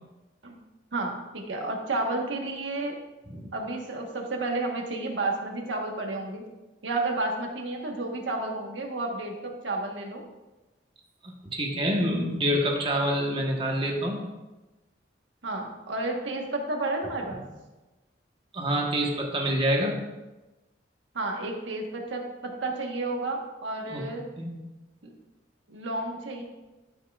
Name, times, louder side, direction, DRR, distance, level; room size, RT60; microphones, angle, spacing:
voice 1, 0.9-3.0 3.5-6.5 6.8-10.2 15.4-17.4 21.1-24.3 25.0-25.1 25.7-26.4, right 2 dB, 85° right, 2 dB, 1.2 m, -31 dB
voice 2, 11.2-14.2 18.5-20.0 23.9-24.0 24.4-24.6, equal, 30° right, 0 dB, 1.1 m, -27 dB
12.5 x 5.6 x 2.4 m, 1.1 s
head